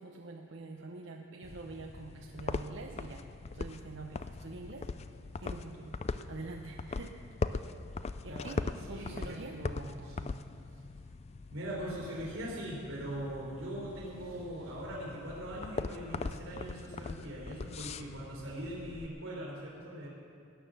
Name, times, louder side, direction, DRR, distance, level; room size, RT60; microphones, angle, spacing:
voice 1, 0.0-5.0 5.4-7.2 8.2-9.6 10.7-10.8 14.0-14.8, right 3 dB, 60° right, 2 dB, 0.8 m, -46 dB
sound 1, 1.4-19.1, left 3 dB, 30° left, 0.3 m, -41 dB
voice 2, 8.2-8.6 8.9-10.3 11.5-20.1, right 1 dB, 85° right, -6 dB, 4.0 m, -41 dB
17.5 x 9.6 x 6.7 m, 2.5 s
head